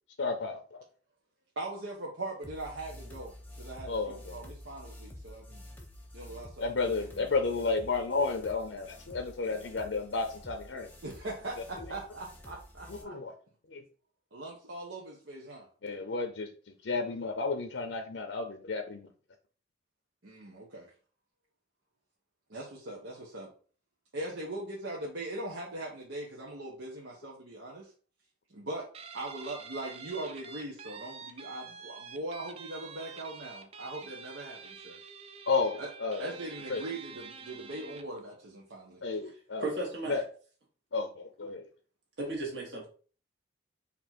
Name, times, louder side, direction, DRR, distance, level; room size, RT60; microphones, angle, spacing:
voice 1, 0.2-0.8 3.9-4.4 6.6-10.9 12.9-13.3 13.7-13.8 15.8-19.1 35.5-36.3 36.7-36.8 39.0-39.7 40.1-40.2 40.9-41.7, left 4 dB, 80° left, 6 dB, 0.6 m, -32 dB
voice 2, 1.6-5.6 6.1-6.5 6.8-7.3 11.0-13.1 14.3-15.7 20.2-20.9 22.5-23.5 24.1-27.9 28.5-28.9 29.1-35.0 35.8-35.9 36.2-39.0, right 2 dB, 90° right, -3 dB, 1.0 m, -41 dB
sound 1, 2.4-13.0, left 1 dB, 10° left, 0.7 m, -49 dB
Guitar, 28.9-38.2, right 5 dB, 30° right, 0.3 m, -47 dB
voice 3, 39.6-40.2 42.2-42.9, right 2 dB, 70° right, -1 dB, 1.8 m, -34 dB
4.3 x 2.8 x 4.4 m, 0.40 s
head